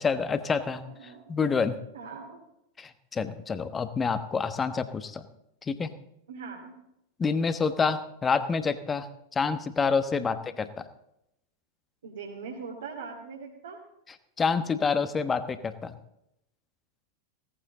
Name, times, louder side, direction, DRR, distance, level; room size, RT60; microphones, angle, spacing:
voice 1, 0.0-0.8 1.3-1.8 2.8-5.2 5.7-5.9 7.2-9.1 9.3-10.8 14.4-15.9, left 5 dB, 20° left, 11 dB, 1.1 m, -27 dB
voice 2, 0.8-1.3 1.9-2.4 6.3-6.7 10.2-10.3 12.0-13.8, right 5 dB, 65° right, -1 dB, 2.6 m, -41 dB
17.0 x 15.0 x 3.9 m, 0.82 s
figure-of-eight pair, 90°, 0 cm